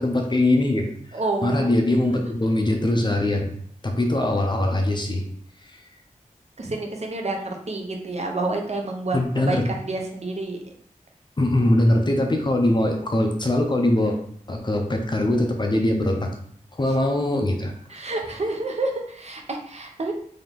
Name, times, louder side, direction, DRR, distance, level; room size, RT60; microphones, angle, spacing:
voice 1, 0.0-3.5 3.8-5.2 5.6-5.8 9.1-9.7 11.4-14.2 14.5-16.3 16.7-18.0, left 1 dB, 35° left, 3 dB, 0.6 m, -22 dB
voice 2, 1.1-1.7 6.6-10.6 17.9-20.1, right 2 dB, 50° right, 2 dB, 0.7 m, -29 dB
3.9 x 2.8 x 3.4 m, 0.63 s
wide cardioid pair, 75°, 14 cm